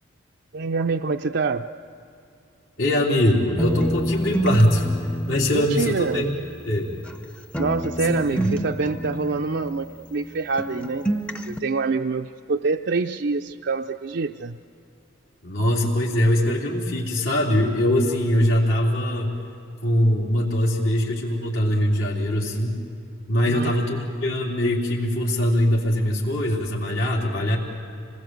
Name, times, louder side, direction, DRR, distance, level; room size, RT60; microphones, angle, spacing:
voice 1, 0.5-1.6 5.5-6.2 7.6-11.1 11.5-14.6 23.5-23.7, right 4 dB, 55° right, 4 dB, 0.5 m, -26 dB
voice 2, 2.8-4.9 5.3-6.3 6.7-6.9 8.1-8.5 15.4-19.4 19.8-22.8 23.3-27.6, left 1 dB, 75° left, -4 dB, 3.6 m, -22 dB
sound 1, 3.6-7.2 7.5-10.3 10.6-11.6, right 1 dB, 5° left, 0.7 m, -29 dB
27.5 x 20.0 x 7.8 m, 2.6 s
head